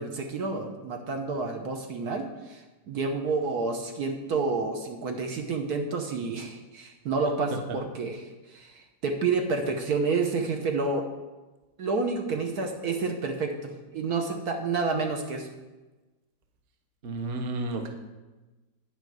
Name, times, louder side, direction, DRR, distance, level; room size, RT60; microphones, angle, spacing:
voice 1, 0.0-8.2 8.5-11.0 11.8-15.5, right 4 dB, 60° right, 4 dB, 1.3 m, -29 dB
voice 2, 17.0-17.9, right 2 dB, 40° right, 5 dB, 1.0 m, -31 dB
10.0 x 5.1 x 7.9 m, 1.2 s
omnidirectional pair, 2.0 m